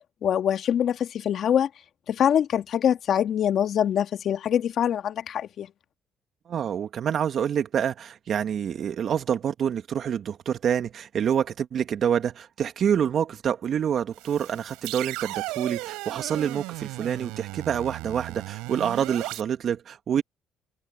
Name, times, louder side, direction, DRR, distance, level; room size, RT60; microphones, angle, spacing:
voice 1, 0.2-1.7 2.1-5.7, left 9 dB, 60° left, 1.7 m, -24 dB
voice 2, 6.5-20.2, right 8 dB, 60° right, 2.1 m, -27 dB
sound 1, 14.1-19.4, right 22 dB, 85° right, 8.0 m, -36 dB
open air
supercardioid pair, 65°, 0 cm